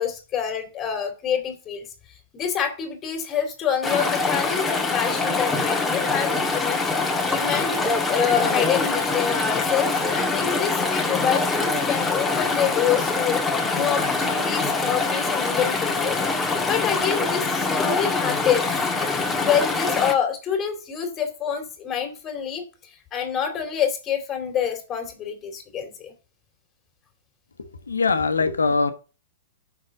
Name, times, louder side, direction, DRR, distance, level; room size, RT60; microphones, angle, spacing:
voice 1, 0.0-1.9 2.3-7.0 7.3-13.4 13.7-16.2 16.6-18.7 19.4-26.1, left 8 dB, 25° left, 2.5 m, -27 dB
Chatter / Stream, 3.8-20.1, left 3 dB, 10° left, 1.4 m, -24 dB
voice 2, 27.9-28.9, left 4 dB, 80° left, 1.0 m, -21 dB
6.3 x 5.8 x 6.3 m
figure-of-eight pair, 105°, 0 cm